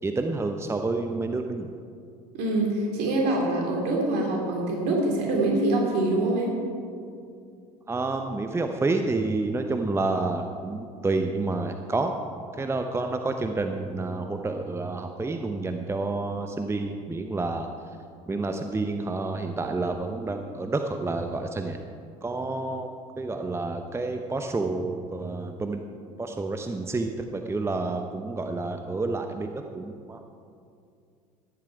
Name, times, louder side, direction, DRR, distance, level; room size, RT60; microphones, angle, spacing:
voice 1, 0.0-1.7 7.9-12.1 12.5-17.7 18.3-21.8 22.2-22.9 23.2-25.8 26.2-30.2, right 3 dB, 15° right, 5 dB, 0.8 m, -29 dB
voice 2, 2.3-6.5, right 2 dB, 60° right, -1 dB, 3.4 m, -25 dB
14.5 x 11.0 x 4.8 m, 2.4 s
figure-of-eight pair, 65°, 19 cm